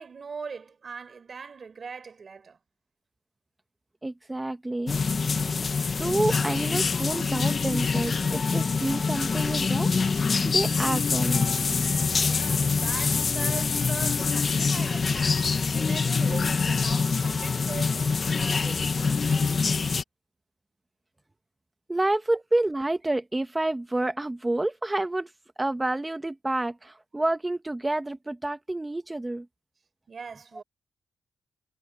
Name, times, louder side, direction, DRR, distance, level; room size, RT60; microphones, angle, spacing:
voice 1, 0.0-2.6 12.2-19.4 30.1-30.6, right 5 dB, 35° right, 4.0 m, -41 dB
voice 2, 4.0-5.0 6.0-11.6 21.9-25.3 25.6-29.5, right 2 dB, 10° right, 0.9 m, -29 dB
sound 1, 4.9-20.0, left 4 dB, 35° left, 0.8 m, -25 dB
wide cardioid pair, 150°, 0 cm